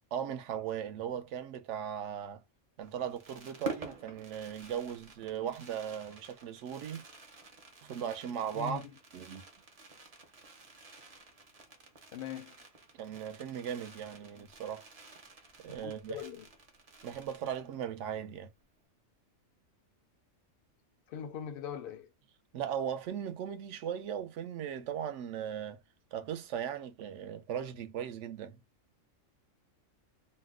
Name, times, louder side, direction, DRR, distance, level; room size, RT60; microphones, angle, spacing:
voice 1, 0.1-2.4 2.8-7.0 7.8-8.8 9.1-9.4 12.9-14.9 15.6-16.2 17.0-18.5 22.5-25.8 26.1-28.6, right 9 dB, 70° right, 0.9 m, -38 dB
Fireworks, 2.8-18.0 18.3-18.4 18.6-18.9, right 3 dB, 45° right, 0.5 m, -50 dB
voice 2, 8.5-8.9 12.1-12.6 15.8-16.5 21.1-22.1, left 8 dB, 60° left, 0.6 m, -41 dB
2.5 x 2.1 x 3.5 m
omnidirectional pair, 1.4 m